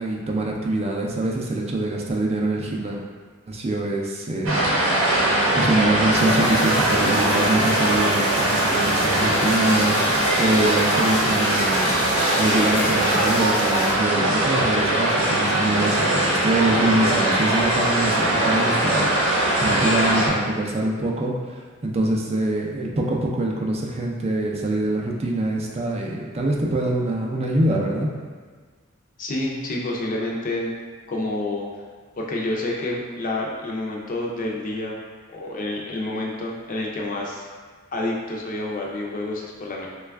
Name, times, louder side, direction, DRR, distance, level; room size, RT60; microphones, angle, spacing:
voice 1, 0.0-3.0 3.5-4.6 5.5-10.0 10.4-28.1, right 1 dB, 30° right, -1 dB, 0.4 m, -24 dB
sound 1, 4.5-20.3, right 1 dB, 70° right, 0.7 m, -21 dB
sound 2, 6.1-13.9, left 2 dB, 80° left, 0.7 m, -33 dB
voice 2, 29.2-30.7 31.1-31.7 32.2-35.0 35.3-37.5 37.9-39.9, left 2 dB, 40° left, -2 dB, 0.5 m, -28 dB
3.1 x 2.3 x 3.4 m, 1.5 s
head